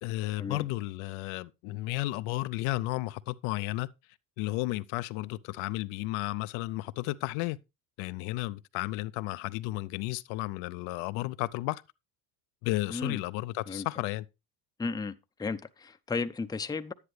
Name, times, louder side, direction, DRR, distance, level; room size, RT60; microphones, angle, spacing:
voice 1, 0.0-3.9 4.4-7.6 8.0-11.8 12.6-14.2, left 18 dB, 70° left, 0.6 m, -33 dB
voice 2, 12.9-13.2 13.7-13.9 14.8-16.9, left 4 dB, 10° left, 0.6 m, -34 dB
10.0 x 9.7 x 3.2 m
supercardioid pair, 80°, 50 cm